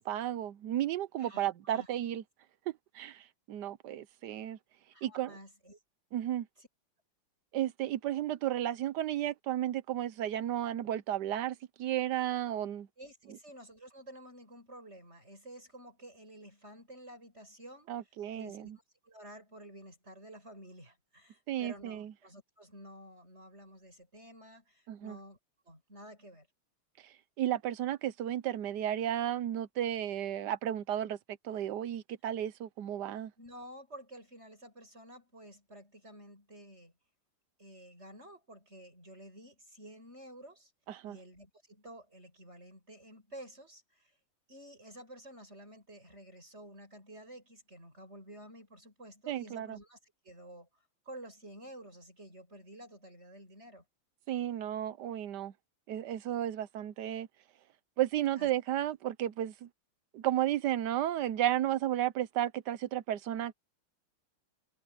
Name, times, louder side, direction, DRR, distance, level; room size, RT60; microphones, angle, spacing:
voice 1, 0.0-2.2 2.9-4.6 5.0-5.3 6.1-6.5 7.5-12.9 17.9-18.8 21.5-22.1 24.9-25.2 27.4-33.3 40.9-41.2 49.3-49.8 54.3-55.5 55.9-57.3 58.0-59.7 60.1-63.5, right 12 dB, 70° right, 1.1 m, -33 dB
voice 2, 1.2-1.9 4.9-5.8 6.6-6.7 13.0-17.9 18.3-18.7 19.0-25.4 25.6-26.5 33.4-36.9 37.6-40.7 41.0-44.1 44.5-50.7 51.0-53.8 58.4-58.5, right 1 dB, 30° right, 8.3 m, -51 dB
omnidirectional pair, 2.4 m